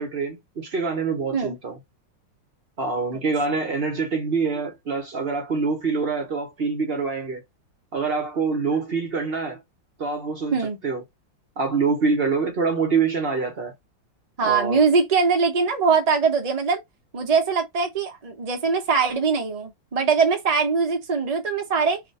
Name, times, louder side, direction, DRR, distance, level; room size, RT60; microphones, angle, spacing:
voice 1, 0.0-1.8 2.8-7.4 7.9-9.6 10.0-10.6 10.8-11.0 11.6-13.7 14.4-14.8, right 4 dB, 50° right, 0.7 m, -25 dB
voice 2, 14.4-16.8 17.1-22.0, right 5 dB, 75° right, 0.3 m, -22 dB
2.9 x 2.5 x 4.0 m
omnidirectional pair, 2.1 m